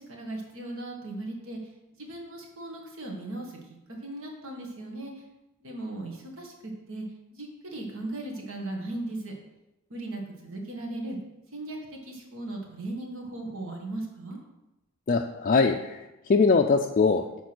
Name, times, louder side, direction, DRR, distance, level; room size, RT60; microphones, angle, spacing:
voice 1, 0.0-1.6 2.0-3.5 4.0-5.1 5.6-7.0 7.3-9.3 9.9-11.2 11.5-11.8 12.0-14.4, right 2 dB, 65° right, 1 dB, 1.7 m, -37 dB
voice 2, 15.1-17.4, left 4 dB, 40° left, 3 dB, 0.4 m, -22 dB
7.1 x 4.6 x 6.1 m, 0.97 s
head